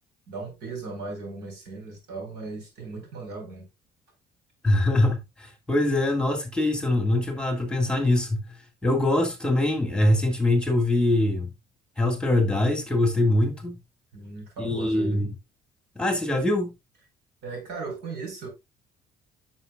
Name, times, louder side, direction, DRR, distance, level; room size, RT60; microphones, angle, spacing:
voice 1, 0.3-3.7 14.1-15.2 17.4-18.5, right 3 dB, 80° right, 4.7 m, -37 dB
voice 2, 4.6-8.4 8.8-11.5 12.0-13.8 14.6-15.3 16.0-16.7, left 1 dB, 5° left, 1.9 m, -23 dB
9.7 x 6.4 x 2.4 m
cardioid pair, 110°, 17 cm